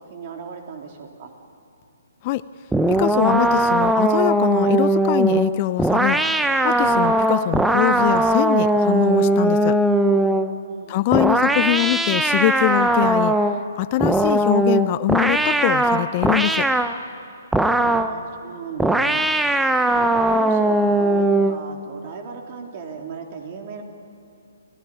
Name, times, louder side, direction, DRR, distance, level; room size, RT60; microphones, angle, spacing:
voice 1, 0.1-1.3 10.6-11.1 17.8-19.3 19.9-23.8, right 6 dB, 40° right, 3 dB, 3.5 m, -37 dB
sound 1, 2.7-10.5 11.1-13.6 14.0-17.0 17.5-18.2 18.8-21.6, right 2 dB, 5° right, 0.8 m, -19 dB
voice 2, 2.9-6.2 6.6-9.8 10.9-13.3 13.8-16.7, left 16 dB, 35° left, 16 dB, 0.5 m, -23 dB
29.0 x 17.5 x 9.3 m, 2.5 s
figure-of-eight pair, 135°, 0 cm